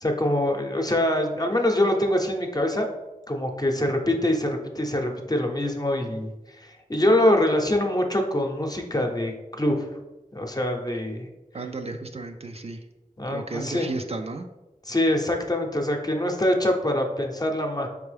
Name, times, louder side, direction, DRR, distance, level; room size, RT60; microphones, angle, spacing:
voice 1, 0.0-2.9 3.3-6.3 6.6-9.9 10.3-11.3 13.2-13.9 14.9-17.9, left 1 dB, 25° left, 3 dB, 0.7 m, -24 dB
voice 2, 11.5-12.9 13.3-14.5, right 3 dB, 45° right, 5 dB, 0.4 m, -33 dB
4.4 x 3.4 x 3.3 m, 1.1 s
wide cardioid pair, 45°, 15 cm